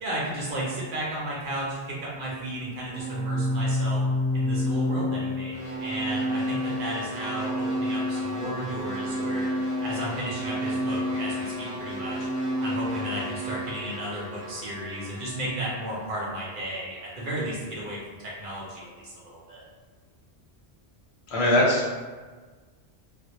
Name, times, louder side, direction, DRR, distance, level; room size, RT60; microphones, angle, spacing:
voice 1, 0.0-4.0 4.3-9.5 9.8-12.1 12.6-19.6, right 1 dB, 55° right, -5 dB, 0.7 m, -34 dB
Organ, 2.9-13.7, left 1 dB, 45° left, 0.4 m, -29 dB
sound 1, 5.5-17.8, left 1 dB, 20° right, 0.9 m, -40 dB
voice 2, 21.3-22.0, left 1 dB, 80° left, -4 dB, 0.9 m, -21 dB
2.1 x 2.1 x 2.8 m, 1.4 s
omnidirectional pair, 1.1 m